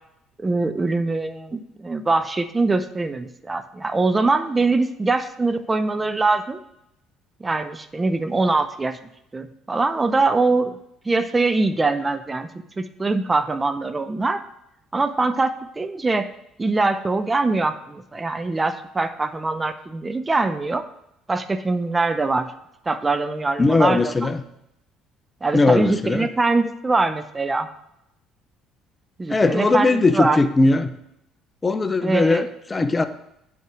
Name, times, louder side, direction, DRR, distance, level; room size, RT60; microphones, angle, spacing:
voice 1, 0.4-6.6 7.4-9.0 9.3-10.7 11.1-14.4 14.9-16.3 16.6-20.8 21.3-22.5 22.9-24.1 25.4-27.7 29.2-30.4 32.0-32.5, right 3 dB, 20° right, 10 dB, 0.6 m, -23 dB
voice 2, 23.6-24.4 25.5-26.3 29.3-30.9 31.6-33.1, left 3 dB, 25° left, 10 dB, 0.7 m, -19 dB
8.3 x 4.6 x 6.1 m, 0.79 s
hypercardioid pair, 65°, 0 cm